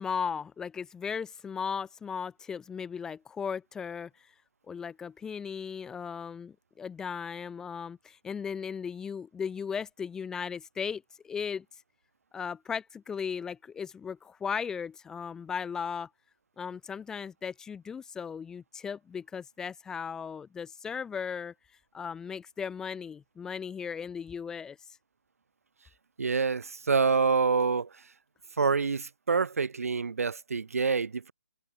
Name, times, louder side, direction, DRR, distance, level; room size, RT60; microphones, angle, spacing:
voice 1, 0.0-4.3 4.7-11.6 12.3-16.1 16.6-21.5 21.9-25.0, left 6 dB, 5° left, 1.2 m, -36 dB
voice 2, 26.2-27.9 28.6-31.3, right 5 dB, 65° right, 2.1 m, -27 dB
figure-of-eight pair, 150°, 9 cm